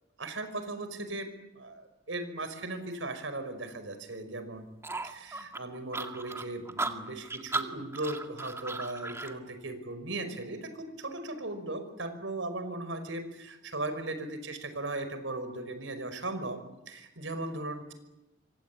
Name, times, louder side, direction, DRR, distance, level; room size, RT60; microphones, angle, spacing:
voice 1, 0.2-4.7 5.0-16.6 16.9-17.9, right 2 dB, 80° right, 9 dB, 5.4 m, -37 dB
sound 1, 4.8-9.3, right 3 dB, 15° right, 2.1 m, -36 dB
27.0 x 25.0 x 8.6 m, 0.97 s
head